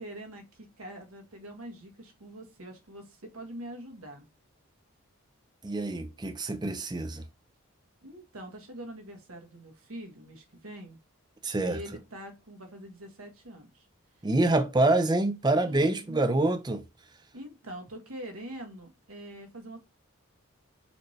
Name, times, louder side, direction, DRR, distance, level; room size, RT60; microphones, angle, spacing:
voice 1, 0.0-4.3 8.0-11.0 11.6-13.9 15.7-16.2 17.3-19.8, right 1 dB, 80° right, 1.2 m, -44 dB
voice 2, 5.6-7.2 11.4-11.8 14.2-16.8, right 2 dB, 20° right, 0.4 m, -26 dB
4.2 x 2.7 x 3.2 m
head